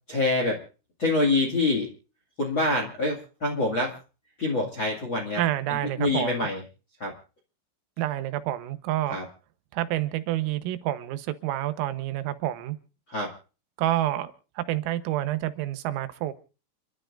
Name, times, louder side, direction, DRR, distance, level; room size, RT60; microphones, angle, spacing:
voice 1, 0.1-0.6 1.0-1.9 2.4-4.0 4.4-5.4 5.7-6.6 7.0-7.1 9.1-9.2 13.1-13.3, left 2 dB, 45° left, 1.6 m, -26 dB
voice 2, 5.4-6.5 8.0-9.2 9.7-12.8 13.8-16.3, right 14 dB, 85° right, 3.7 m, -28 dB
29.5 x 12.5 x 2.5 m
omnidirectional pair, 5.9 m